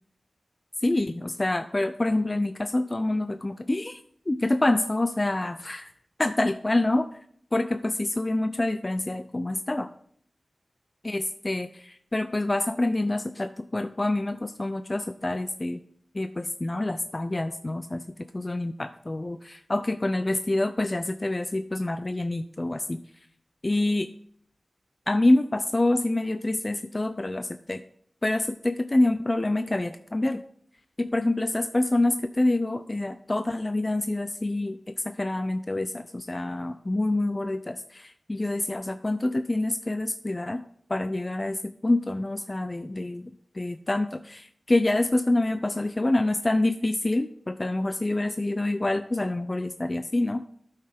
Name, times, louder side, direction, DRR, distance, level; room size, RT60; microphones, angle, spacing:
voice 1, 0.8-5.9 6.2-7.1 7.5-9.9 11.0-15.8 16.1-18.0 18.3-23.0 23.6-24.1 25.1-27.8 28.2-30.4 31.0-40.6 40.9-50.5, left 2 dB, 35° left, 10 dB, 0.4 m, -27 dB
12.5 x 5.6 x 3.5 m, 0.63 s
cardioid pair, 40°, 0 cm